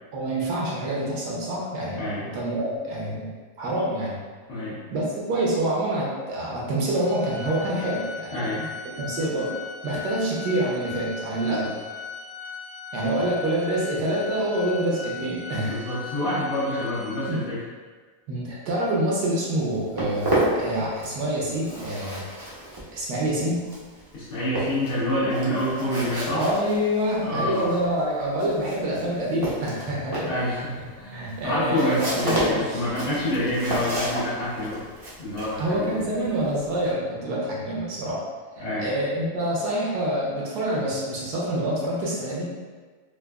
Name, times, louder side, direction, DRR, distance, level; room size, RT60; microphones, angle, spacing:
voice 1, 0.1-3.3 3.6-4.2 4.9-8.7 9.0-11.7 12.9-15.8 17.3-17.4 18.3-22.2 22.9-23.7 26.3-30.3 31.1-32.8 35.6-38.2 38.6-42.5, right 1 dB, 80° right, -5 dB, 1.4 m, -26 dB
voice 2, 2.0-2.3 4.5-4.8 8.3-8.6 11.4-11.7 15.7-17.6 24.1-26.4 27.2-27.7 30.3-34.8 35.2-36.0 38.6-38.9, left 1 dB, 75° left, -10 dB, 1.8 m, -27 dB
Organ, 7.0-17.6, left 6 dB, 55° right, 0.8 m, -38 dB
Walk footsteps, 19.5-21.3 21.5-36.9, right 1 dB, 30° right, 0.4 m, -31 dB
4.7 x 2.3 x 2.3 m, 1.4 s
omnidirectional pair, 1.7 m